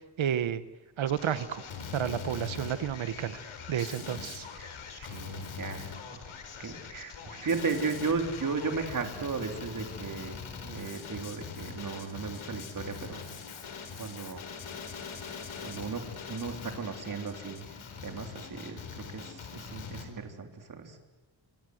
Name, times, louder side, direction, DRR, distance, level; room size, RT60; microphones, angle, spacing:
voice 1, 0.2-0.6 1.0-1.6 1.9-3.4 3.7-4.5, right 9 dB, 75° right, 13 dB, 1.2 m, -31 dB
Male speech man speaking, 1.1-20.1, left 6 dB, 85° left, 4.5 m, -42 dB
voice 2, 4.6-6.2 6.6-13.2 14.0-14.4 15.6-17.6 18.0-21.0, right 4 dB, 40° right, 5 dB, 3.5 m, -35 dB
27.5 x 26.0 x 7.9 m, 1.1 s
wide cardioid pair, 155°, 47 cm